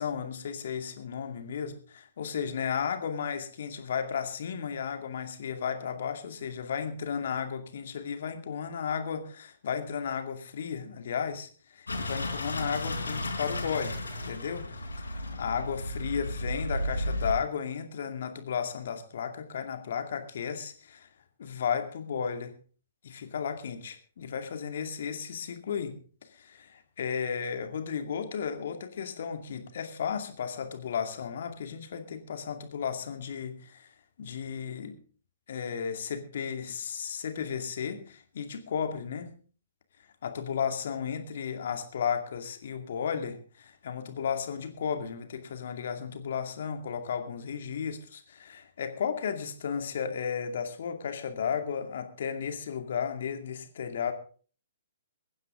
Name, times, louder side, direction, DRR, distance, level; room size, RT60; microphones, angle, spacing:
voice 1, 0.0-14.0 14.2-14.8 15.4-21.1 21.4-22.5 23.0-33.9 34.2-35.0 35.5-39.3 40.2-54.1, left 7 dB, 55° left, 6 dB, 2.3 m, -34 dB
sound 1, 11.9-17.3, left 1 dB, 75° left, 4.0 m, -34 dB
23.5 x 9.8 x 3.7 m, 0.41 s
figure-of-eight pair, 125°, 0 cm